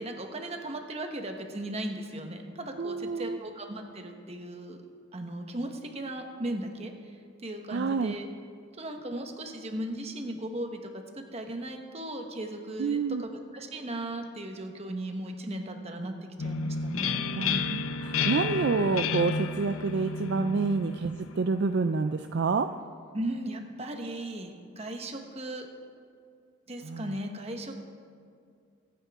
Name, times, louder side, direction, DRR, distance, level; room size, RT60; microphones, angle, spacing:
voice 1, 0.0-4.8 5.1-7.2 7.4-8.3 8.8-17.2 20.4-20.5 23.1-25.7 26.7-27.8, right 1 dB, 30° right, 4 dB, 1.2 m, -37 dB
voice 2, 2.8-3.4 7.7-8.1 12.8-13.2 17.3-22.7 26.8-27.1, right 4 dB, 50° right, 8 dB, 0.4 m, -28 dB
sound 1, 16.4-22.0, left 5 dB, 75° left, 0.6 m, -32 dB
23.0 x 9.5 x 3.6 m, 2.3 s
head